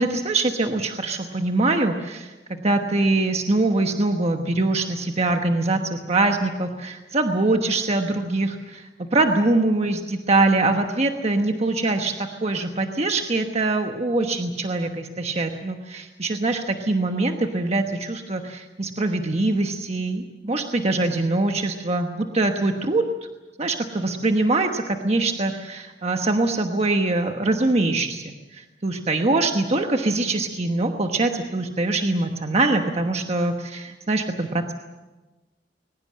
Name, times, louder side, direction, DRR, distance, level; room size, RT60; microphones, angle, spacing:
voice 1, 0.0-23.1 23.6-34.7, right 2 dB, 40° right, 4 dB, 1.2 m, -23 dB
22.0 x 20.5 x 7.6 m, 1.2 s
head